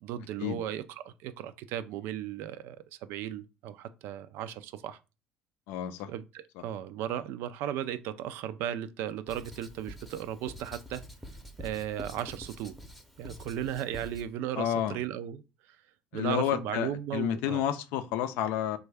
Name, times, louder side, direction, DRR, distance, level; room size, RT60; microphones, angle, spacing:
voice 1, 0.0-2.8 3.0-5.0 6.1-6.2 6.6-11.0 11.6-12.8 13.2-15.4 16.1-17.6, right 10 dB, 75° right, 0.3 m, -36 dB
voice 2, 5.7-6.1 6.6-6.7 14.5-15.0 16.1-18.8, left 10 dB, 80° left, 0.4 m, -30 dB
Writing, 9.3-14.3, equal, ahead, 0.6 m, -46 dB
3.3 x 2.2 x 3.3 m
supercardioid pair, 75°, 4 cm